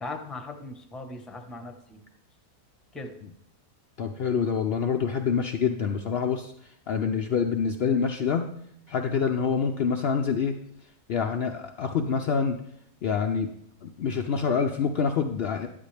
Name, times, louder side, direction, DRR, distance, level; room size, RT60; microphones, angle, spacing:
voice 1, 0.0-2.0 2.9-3.1, left 2 dB, ahead, 5 dB, 0.5 m, -38 dB
voice 2, 4.0-6.5 6.9-8.5 8.9-10.5 11.1-12.6 13.0-13.5 13.8-15.7, left 6 dB, 85° left, 4 dB, 0.5 m, -26 dB
11.5 x 8.9 x 3.3 m, 0.75 s
omnidirectional pair, 1.7 m